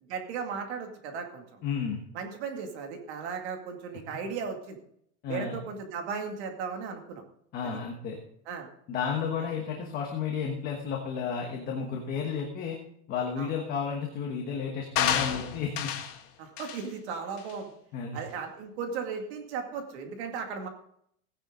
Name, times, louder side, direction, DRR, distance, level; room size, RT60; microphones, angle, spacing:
voice 1, 0.1-1.6 2.1-4.8 5.3-7.2 7.6-7.8 8.5-8.7 13.4-13.5 16.4-17.7 18.1-20.7, right 5 dB, 45° right, 4 dB, 2.3 m, -36 dB
voice 2, 1.6-2.0 5.2-5.6 7.5-8.2 8.9-12.8 13.1-15.9 17.9-18.2, left 6 dB, 20° left, 1 dB, 1.3 m, -32 dB
sound 1, 15.0-16.2 16.6-16.8 17.4-17.5, left 9 dB, 85° left, 2.1 m, -29 dB
17.0 x 10.0 x 3.8 m, 0.69 s
supercardioid pair, 175°, 44 cm